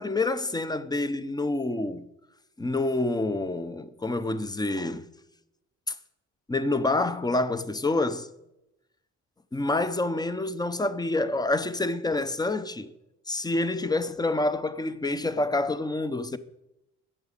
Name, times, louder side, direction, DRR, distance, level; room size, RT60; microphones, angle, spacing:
voice 1, 0.0-2.1 2.6-5.1 5.9-6.0 6.5-8.3 9.5-12.9 13.3-16.4, left 2 dB, 15° left, 0.7 m, -27 dB
8.9 x 7.1 x 8.4 m
cardioid pair, 90°, 30 cm